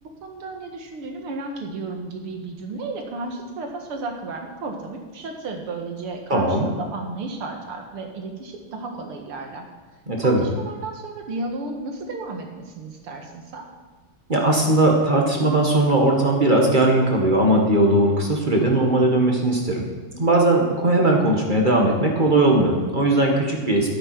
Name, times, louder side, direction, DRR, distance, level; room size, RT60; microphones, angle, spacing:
voice 1, 0.0-9.6 10.2-13.6, right 3 dB, 85° right, 3 dB, 2.6 m, -33 dB
voice 2, 6.3-6.7 10.1-10.4 14.3-19.8 20.1-24.0, right 1 dB, 25° right, 0 dB, 1.8 m, -19 dB
12.5 x 8.9 x 6.0 m, 1.5 s
omnidirectional pair, 2.4 m